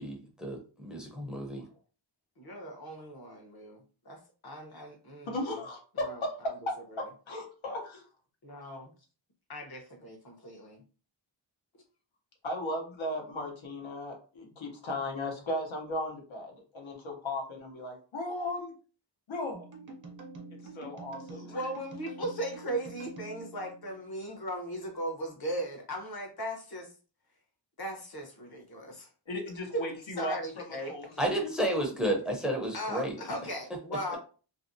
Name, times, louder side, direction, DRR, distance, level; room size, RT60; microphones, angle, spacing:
voice 1, 0.0-1.6 31.2-33.1, right 1 dB, ahead, 1 dB, 0.6 m, -31 dB
voice 2, 2.4-5.6 6.0-6.2 6.9-7.0 8.4-8.9 9.5-10.8 21.5-26.9 27.8-29.1 29.7-29.9 30.2-30.9 32.7-34.2, right 1 dB, 55° left, 3 dB, 0.8 m, -38 dB
voice 3, 5.2-8.1 12.4-18.7 19.3-19.7 20.6-21.6 29.3-31.5, left 1 dB, 80° left, 1 dB, 0.8 m, -36 dB
sound 1, 19.5-24.4, right 3 dB, 40° right, 0.7 m, -47 dB
2.6 x 2.0 x 2.6 m, 0.37 s
wide cardioid pair, 75°, 46 cm